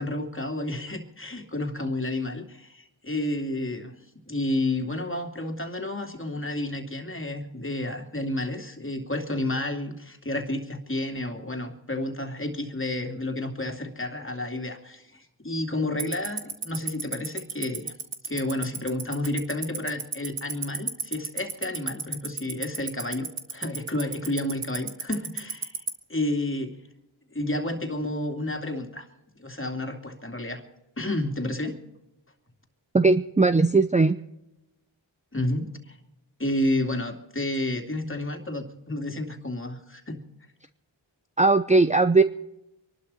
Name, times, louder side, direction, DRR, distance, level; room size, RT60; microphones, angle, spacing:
voice 1, 0.0-3.9 4.3-17.9 18.2-25.8 26.1-26.7 27.3-29.1 29.4-30.6 31.0-31.7 35.3-36.0 36.4-40.2, left 1 dB, 25° left, 4 dB, 2.8 m, -30 dB
Tick-tock, 16.0-25.9, right 7 dB, 75° right, 1.8 m, -29 dB
voice 2, 32.9-34.2 41.4-42.2, right 3 dB, 15° right, 11 dB, 0.7 m, -19 dB
24.5 x 12.0 x 4.3 m, 0.89 s
cardioid pair, 40°, 47 cm